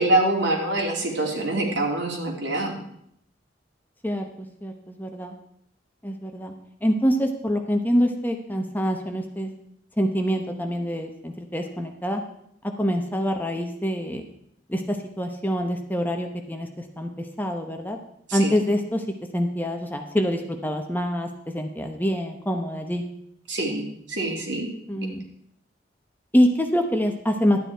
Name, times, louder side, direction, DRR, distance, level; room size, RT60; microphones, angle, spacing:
voice 1, 0.0-2.8 18.3-18.5 23.5-24.7, right 2 dB, 75° right, 0 dB, 2.6 m, -25 dB
voice 2, 4.6-5.3 6.0-6.5 6.8-9.5 10.0-12.2 12.8-14.2 14.7-16.7 17.0-17.1 17.4-18.0 18.3-19.0 19.3-21.3 21.5-23.0 24.9-25.2 26.3-27.6, equal, 10° left, 4 dB, 0.9 m, -25 dB
12.0 x 8.9 x 4.5 m, 0.72 s
head